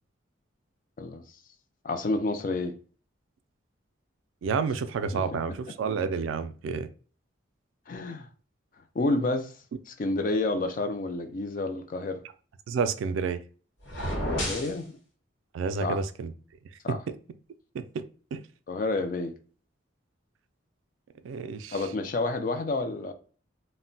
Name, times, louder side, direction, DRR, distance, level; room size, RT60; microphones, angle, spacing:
voice 1, 1.8-2.8 5.1-5.2 7.9-8.3 9.0-9.5 10.0-12.2 14.3-15.0 15.8-16.0 16.8-17.0 18.7-19.3 21.7-23.1, left 2 dB, 45° left, 0.4 m, -29 dB
voice 2, 4.4-6.9 12.7-13.4 15.5-16.3 16.9-17.0 17.7-18.0 18.3-18.4 21.2-21.9, right 5 dB, 80° right, 0.3 m, -30 dB
sound 1, 13.8-14.8, equal, 75° left, 1.0 m, -30 dB
2.1 x 2.1 x 3.8 m
head